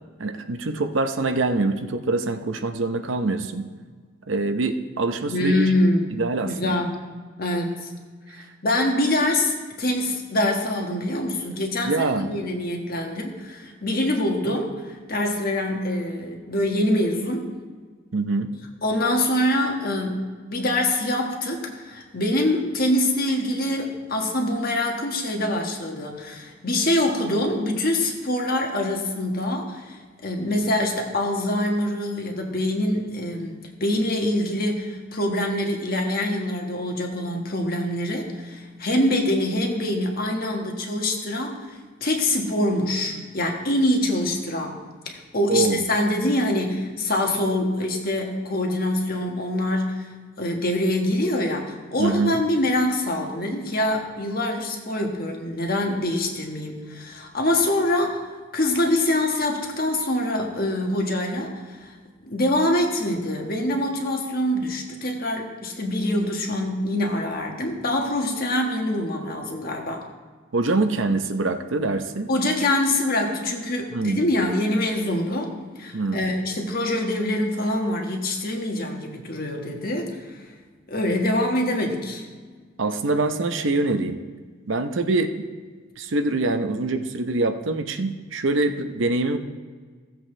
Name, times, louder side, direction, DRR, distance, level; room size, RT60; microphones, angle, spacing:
voice 1, 0.2-3.7 4.3-5.7 6.1-6.8 8.4-8.5 11.8-12.3 18.1-18.5 45.5-45.8 52.0-52.4 70.5-72.3 73.9-74.3 75.9-76.2 82.8-84.2 84.7-85.3 86.0-89.4, right 3 dB, 70° right, 7 dB, 0.7 m, -24 dB
voice 2, 5.3-6.2 6.4-7.1 7.4-7.9 8.6-17.5 18.8-41.6 42.0-44.8 45.0-50.1 50.4-58.2 58.5-61.9 62.2-70.0 72.3-75.5 75.8-80.4 80.9-82.2, left 1 dB, 45° left, 1 dB, 1.5 m, -25 dB
16.0 x 7.7 x 3.3 m, 1.5 s
head